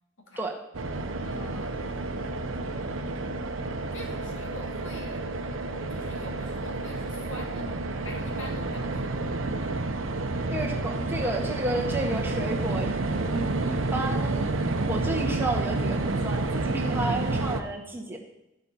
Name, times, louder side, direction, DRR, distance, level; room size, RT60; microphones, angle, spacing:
sound 1, 0.7-17.6, right 2 dB, 85° right, 0.9 m, -30 dB
voice 1, 1.2-2.0 3.9-5.3 5.9-9.2, left 1 dB, 75° left, 1 dB, 2.4 m, -45 dB
voice 2, 10.5-14.5 14.9-18.2, right 2 dB, 10° right, -1 dB, 1.7 m, -32 dB
13.0 x 6.0 x 5.5 m, 0.89 s
head